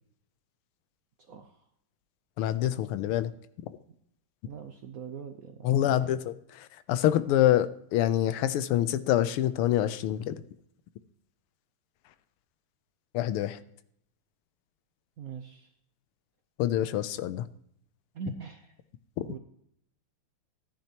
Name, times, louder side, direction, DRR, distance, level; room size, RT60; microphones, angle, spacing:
voice 1, 2.4-3.3 5.6-10.4 13.1-13.6 16.6-17.5 19.2-19.3, left 12 dB, 90° left, 14 dB, 1.6 m, -26 dB
voice 2, 4.4-6.2 15.2-15.7 18.1-18.7 19.2-19.4, right 7 dB, 65° right, 6 dB, 0.9 m, -42 dB
13.5 x 10.5 x 2.9 m, 0.72 s
omnidirectional pair, 2.3 m